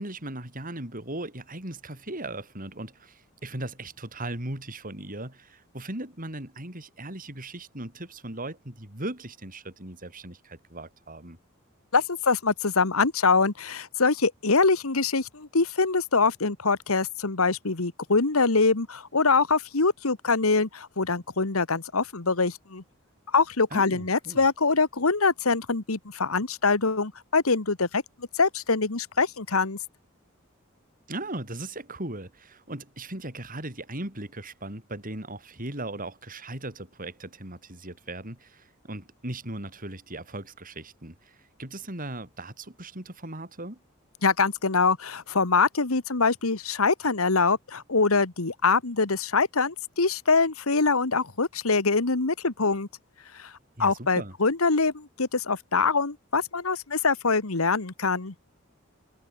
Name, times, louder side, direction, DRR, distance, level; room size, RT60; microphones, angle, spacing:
voice 1, 0.0-11.4 23.7-24.4 31.1-43.8 53.8-54.3, right 1 dB, 40° right, 6.5 m, -38 dB
voice 2, 11.9-22.8 23.3-28.0 28.3-29.8 44.2-52.9 53.4-53.5 53.8-58.3, left 4 dB, 90° left, 1.7 m, -24 dB
head